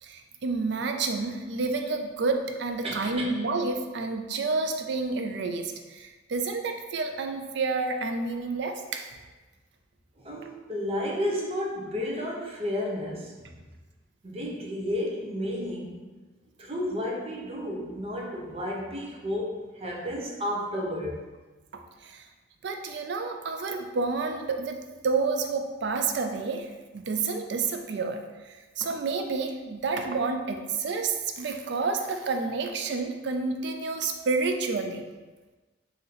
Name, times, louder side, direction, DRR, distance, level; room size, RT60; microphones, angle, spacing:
voice 1, 0.0-9.1 22.0-22.3 22.6-24.8 25.0-26.7 26.9-35.1, right 4 dB, 65° right, 5 dB, 0.4 m, -29 dB
voice 2, 2.8-3.3 10.2-13.6 14.2-16.1 16.6-21.2, left 1 dB, 35° right, -2 dB, 0.7 m, -32 dB
3.9 x 2.9 x 4.1 m, 1.2 s
head